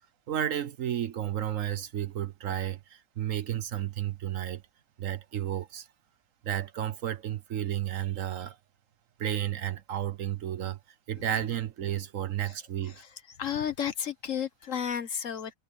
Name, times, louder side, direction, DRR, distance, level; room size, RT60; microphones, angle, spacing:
voice 1, 0.3-4.6 5.0-5.9 6.4-8.6 9.2-10.8 11.1-13.0, right 11 dB, 60° right, 1.1 m, -32 dB
voice 2, 12.9-15.5, left 8 dB, 55° left, 1.4 m, -33 dB
omnidirectional pair, 1.6 m